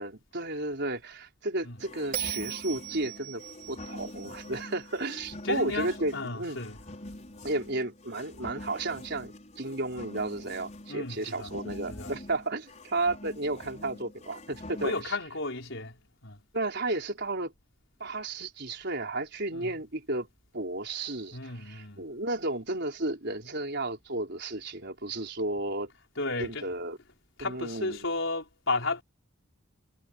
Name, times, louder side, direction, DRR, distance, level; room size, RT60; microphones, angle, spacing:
voice 1, 0.0-3.4 3.7-6.6 7.4-15.2 16.5-17.5 18.0-20.3 20.5-25.9 26.4-27.0 27.4-28.0, right 2 dB, 55° right, 4.9 m, -33 dB
sound 1, 1.8-15.0, left 1 dB, 35° left, 5.9 m, -45 dB
Bell, 2.1-5.4, right 11 dB, 40° right, 2.7 m, -39 dB
voice 2, 5.4-6.8 10.9-11.5 11.9-12.1 14.8-15.9 16.2-16.4 19.5-19.7 21.3-22.0 26.2-26.7 27.4-29.0, left 3 dB, 65° left, 5.3 m, -33 dB
head